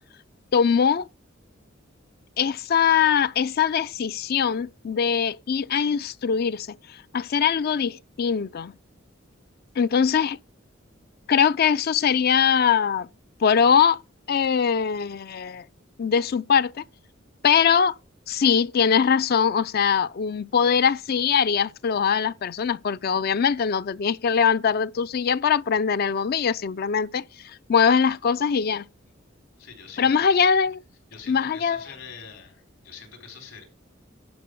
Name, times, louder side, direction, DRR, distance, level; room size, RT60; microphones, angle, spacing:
voice 1, 0.5-1.1 2.4-6.8 7.1-8.7 9.8-10.4 11.3-13.1 13.4-14.0 14.3-15.6 16.0-16.7 17.4-18.0 18.3-27.2 27.7-28.8 30.0-30.8 31.3-31.8, left 7 dB, 50° left, 0.4 m, -22 dB
voice 2, 29.6-30.2 31.1-33.6, left 6 dB, 80° left, 3.9 m, -44 dB
11.0 x 4.6 x 6.4 m
head